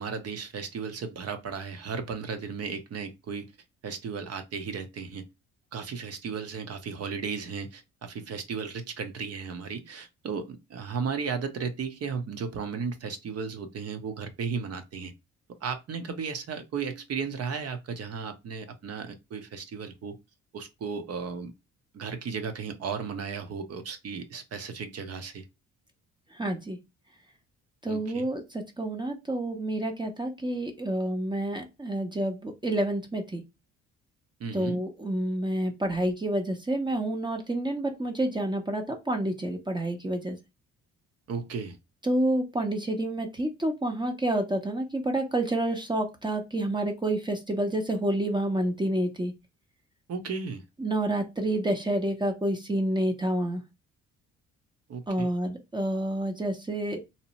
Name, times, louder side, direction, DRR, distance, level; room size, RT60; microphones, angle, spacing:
voice 1, 0.0-3.5 3.8-5.3 5.7-15.1 15.6-20.2 20.5-21.5 21.9-25.4 27.9-28.3 34.4-34.8 41.3-41.8 50.1-50.6 54.9-55.3, right 5 dB, 55° right, 0.7 m, -35 dB
voice 2, 26.3-26.8 27.8-33.4 34.5-40.4 42.0-49.3 50.8-53.6 55.1-57.0, right 1 dB, 15° right, 0.6 m, -29 dB
2.7 x 2.0 x 2.9 m
cardioid pair, 90°, 30 cm